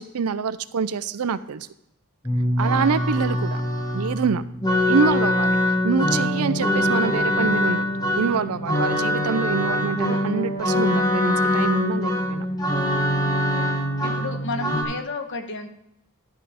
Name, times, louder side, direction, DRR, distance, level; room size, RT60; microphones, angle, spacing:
voice 1, 0.0-1.7 2.6-3.6 3.9-4.4 4.9-5.6 5.8-7.9 8.2-12.5, right 5 dB, 85° right, 15 dB, 0.5 m, -25 dB
sound 1, 2.2-14.8, left 1 dB, 15° left, 1.3 m, -23 dB
voice 2, 13.3-13.7 14.0-15.7, left 2 dB, 55° left, 6 dB, 1.1 m, -32 dB
11.5 x 5.7 x 5.0 m, 0.83 s
head